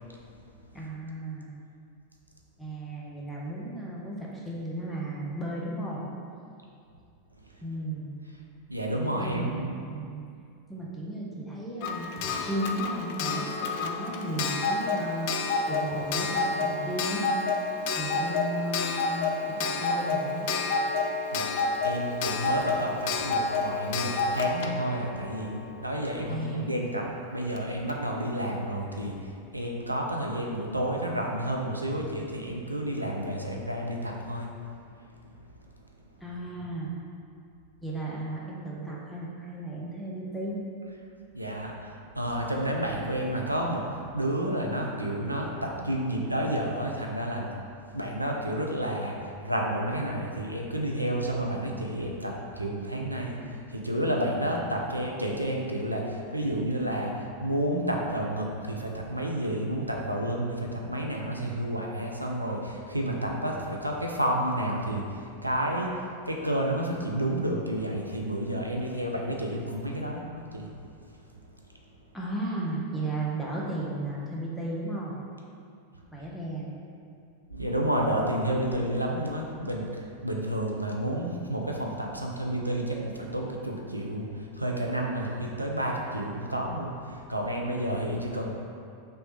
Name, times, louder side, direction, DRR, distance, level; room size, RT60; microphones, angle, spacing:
voice 1, 0.7-1.5 2.6-6.0 7.6-8.1 9.1-10.2 10.7-15.3 15.7-20.5 26.3-26.9 36.2-36.9 37.8-40.6 72.1-75.2 76.1-76.7, right 1 dB, 5° left, -5 dB, 0.8 m, -35 dB
voice 2, 8.7-9.7 21.3-21.5 21.8-34.6 41.3-47.5 47.9-70.7 77.5-88.5, right 1 dB, 85° right, 0 dB, 0.4 m, -30 dB
Clock, 11.8-26.4 27.6-27.7 27.9-28.0, left 4 dB, 50° left, 0.3 m, -29 dB
3.2 x 3.1 x 4.5 m, 2.4 s
figure-of-eight pair, 90°, 0 cm